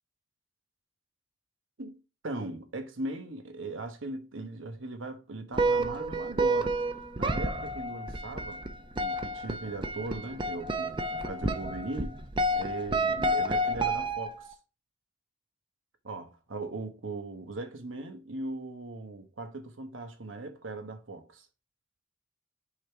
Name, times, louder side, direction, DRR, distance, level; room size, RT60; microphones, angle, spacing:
voice 1, 1.8-6.8 7.2-8.6 9.0-12.2 12.5-14.6 16.0-21.5, right 2 dB, 90° right, 1.2 m, -39 dB
sound 1, 5.5-14.5, right 1 dB, 25° right, 0.6 m, -30 dB
6.3 x 4.0 x 4.5 m
head